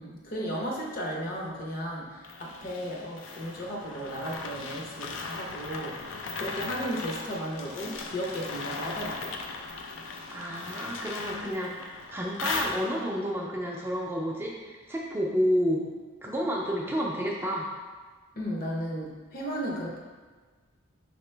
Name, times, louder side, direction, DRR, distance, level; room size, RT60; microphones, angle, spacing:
voice 1, 0.0-9.3 18.4-20.0, equal, 45° left, -2 dB, 0.7 m, -35 dB
Draggin the Chains Dry, 2.2-13.2, left 4 dB, 80° left, 0.4 m, -38 dB
voice 2, 10.3-15.9 16.2-17.7, equal, 10° right, -3 dB, 0.4 m, -30 dB
5.0 x 2.9 x 3.3 m, 1.4 s
head